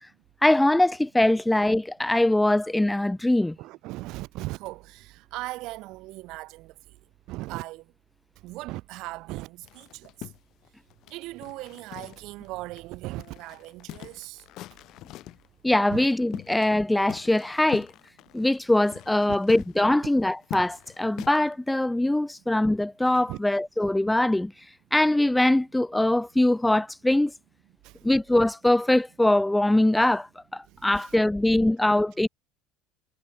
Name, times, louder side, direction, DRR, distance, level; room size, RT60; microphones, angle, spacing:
voice 1, 0.4-3.6 15.6-17.9 18.3-24.5 24.9-27.3 28.0-32.3, left 1 dB, 5° left, 0.6 m, -22 dB
voice 2, 3.6-6.7 7.3-7.9 8.4-10.3 11.1-14.4 15.9-16.1 19.3-19.4 23.3-23.4 27.8-28.0 30.7-31.1, right 19 dB, 60° right, 4.1 m, -38 dB
sound 1, 9.6-12.5 12.8-12.9 13.2-15.5 16.0-16.8 17.1-21.5, left 15 dB, 55° left, 3.6 m, -43 dB
hypercardioid pair, 70°, 0 cm